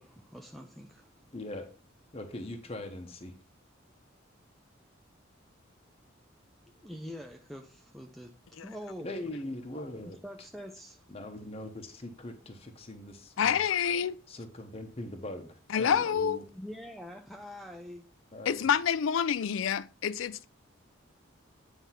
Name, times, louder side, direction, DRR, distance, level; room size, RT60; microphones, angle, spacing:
voice 1, 0.0-1.2 6.8-8.3 8.6-9.1 10.2-11.0 16.5-18.1, equal, ahead, 0.5 m, -44 dB
voice 2, 1.3-1.7 2.1-3.3 9.0-10.2 11.1-13.6 14.3-16.4 18.3-18.7, left 1 dB, 30° left, 0.9 m, -41 dB
voice 3, 13.4-14.2 15.7-16.4 18.5-20.5, left 7 dB, 80° left, 0.4 m, -27 dB
9.1 x 3.5 x 5.7 m
head